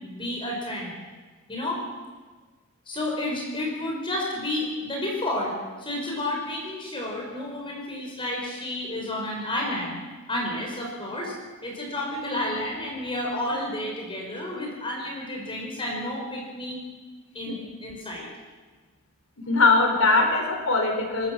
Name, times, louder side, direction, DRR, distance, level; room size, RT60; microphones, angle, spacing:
voice 1, 0.0-0.9 1.5-1.8 2.9-5.5 5.8-10.0 10.3-11.3 11.6-16.8 17.3-18.3, left 1 dB, 25° left, -2 dB, 5.0 m, -31 dB
voice 2, 19.5-21.3, left 3 dB, 75° left, 2 dB, 4.8 m, -21 dB
27.0 x 12.5 x 7.6 m, 1.3 s
head